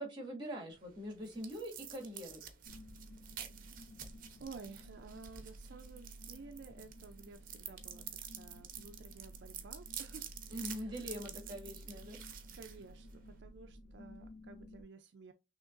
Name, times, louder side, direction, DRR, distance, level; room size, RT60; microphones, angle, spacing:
voice 1, 0.0-2.4 10.5-12.2, equal, 25° right, 1.9 m, -43 dB
sound 1, 0.7-13.4, right 9 dB, 50° right, 0.8 m, -50 dB
sound 2, 2.7-14.8, equal, 55° left, 0.5 m, -54 dB
voice 2, 4.4-8.1 8.3-10.3 10.8-11.0 12.0-12.2 12.5-15.3, right 4 dB, 65° right, 0.4 m, -53 dB
6.2 x 2.9 x 2.5 m
head